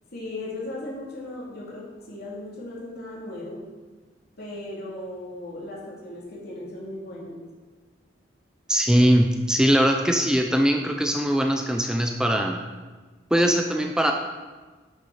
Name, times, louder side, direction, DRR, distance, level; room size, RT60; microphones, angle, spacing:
voice 1, 0.1-3.7 4.4-7.4, left 1 dB, 60° left, -4 dB, 3.0 m, -37 dB
voice 2, 8.7-12.6 13.3-14.1, equal, 5° right, 3 dB, 0.5 m, -21 dB
9.9 x 6.6 x 5.0 m, 1.3 s
head